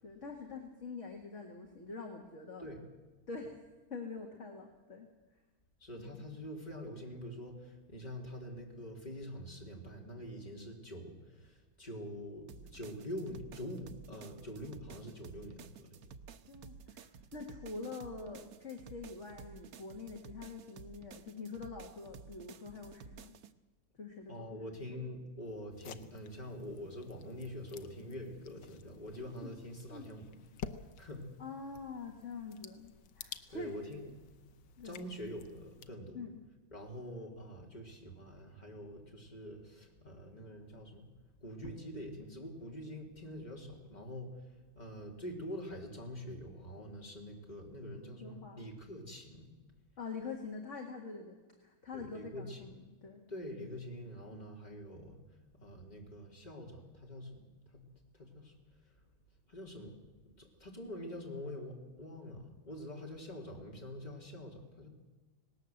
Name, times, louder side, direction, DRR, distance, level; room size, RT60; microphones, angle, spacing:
voice 1, 0.0-2.7 3.3-3.5 3.9-5.1 5.9-6.2 16.5-17.1 17.3-23.3 23.9-24.6 24.9-25.0 29.4-29.5 29.9-30.1 31.4-34.2 34.8-35.0 36.1-36.4 48.2-48.7 50.0-53.2, left 4 dB, 35° left, 2 dB, 2.1 m, -45 dB
voice 2, 5.8-16.0 24.3-30.3 31.0-31.3 33.5-34.1 34.8-36.2 36.7-41.1 41.4-44.5 44.7-49.5 51.9-52.6 53.3-55.2 55.6-57.4 57.7-57.8 58.1-58.5 59.5-59.9 60.4-64.9, equal, 20° left, 1 dB, 3.3 m, -45 dB
sound 1, 12.5-23.5, right 6 dB, 60° right, 1.0 m, -53 dB
sound 2, 25.7-35.9, left 7 dB, 65° left, 1.5 m, -51 dB
19.0 x 18.5 x 7.9 m, 1.2 s
omnidirectional pair, 2.3 m